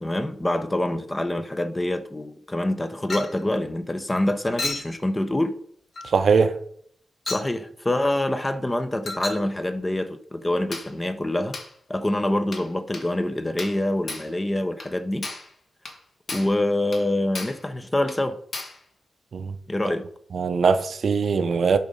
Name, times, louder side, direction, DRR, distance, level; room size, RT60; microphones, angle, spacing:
voice 1, 0.0-5.5 7.3-11.6 11.9-15.3 16.3-18.4 19.7-20.1, left 1 dB, 15° left, 0.7 m, -26 dB
Chink clink, 3.1-3.4 4.6-5.0 6.0-6.1 7.3-7.5 9.1-9.5 10.7-10.9 11.5-11.7 12.5-12.7 12.9-13.1 13.6-13.8 14.1-14.3 14.8-14.9 15.2-15.5 15.9-16.0 16.3-16.6 16.9-17.1 17.4-17.6 18.1-18.2 18.5-18.8, left 2 dB, 55° left, 1.9 m, -33 dB
voice 2, 6.0-6.6 19.3-19.5 20.3-21.8, right 5 dB, 65° right, 0.7 m, -21 dB
10.5 x 3.9 x 5.4 m
wide cardioid pair, 125°, 0 cm